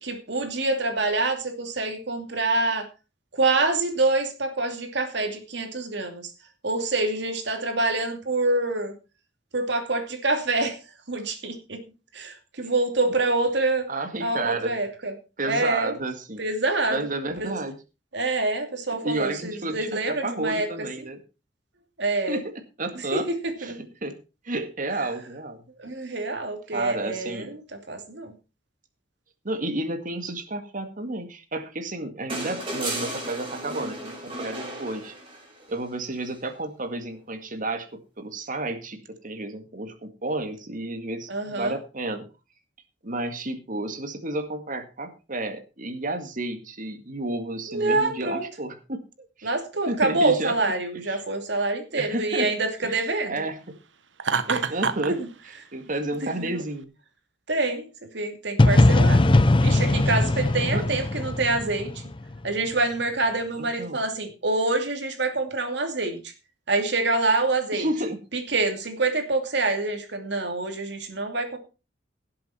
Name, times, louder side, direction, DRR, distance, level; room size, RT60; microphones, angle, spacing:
voice 1, 0.0-2.9 3.3-6.3 6.6-8.9 9.5-10.8 11.1-11.8 12.1-13.9 14.2-15.1 15.5-15.9 16.4-17.1 17.4-17.5 18.1-20.7 21.0-21.1 22.0-22.4 23.1-23.8 25.8-28.3 41.3-41.8 47.7-48.4 49.4-53.4 54.5-54.7 55.1-55.2 56.2-56.6 57.5-57.9 58.1-59.2 59.6-61.9 62.4-66.2 66.7-67.9 68.3-71.6, right 2 dB, 65° right, 5 dB, 2.7 m, -26 dB
voice 2, 13.9-14.7 15.4-16.5 16.9-17.8 19.0-21.2 22.3-22.5 22.8-23.3 23.6-23.7 24.0-24.1 24.4-25.6 26.7-27.5 29.4-35.2 35.7-42.2 43.0-49.5 49.9-50.6 51.1-51.2 51.9-52.5 52.8-53.6 54.7-55.2 55.7-56.9 60.7-60.8 63.6-64.0 67.7-68.2, right 2 dB, 45° right, 8 dB, 2.0 m, -31 dB
sound 1, 32.3-35.6 37.1-37.2, right 1 dB, 30° right, 5.0 m, -34 dB
Laughter, 54.2-55.1, right 5 dB, 85° right, 1.0 m, -25 dB
sound 2, 58.6-62.4, left 2 dB, 30° left, 0.6 m, -19 dB
17.0 x 7.7 x 4.4 m, 0.31 s
head